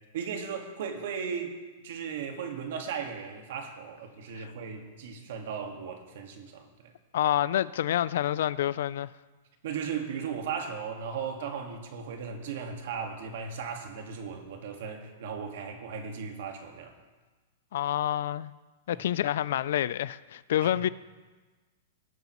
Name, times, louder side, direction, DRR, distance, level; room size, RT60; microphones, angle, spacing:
voice 1, 0.1-1.5 1.8-6.9 9.6-16.9 18.9-19.0, right 6 dB, 65° right, 1.7 m, -36 dB
voice 2, 7.1-9.1 17.7-18.5 18.9-20.9, left 11 dB, 70° left, 0.3 m, -28 dB
18.5 x 9.2 x 3.1 m
supercardioid pair, 155°, 0 cm